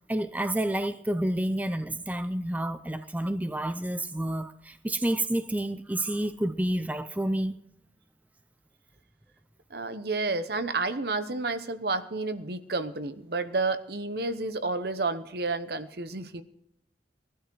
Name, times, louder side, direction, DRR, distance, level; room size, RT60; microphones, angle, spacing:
voice 1, 0.1-7.6, right 1 dB, 10° right, 10 dB, 0.5 m, -29 dB
voice 2, 9.7-16.4, right 3 dB, 60° right, 11 dB, 1.0 m, -30 dB
19.5 x 12.0 x 4.7 m, 0.78 s
head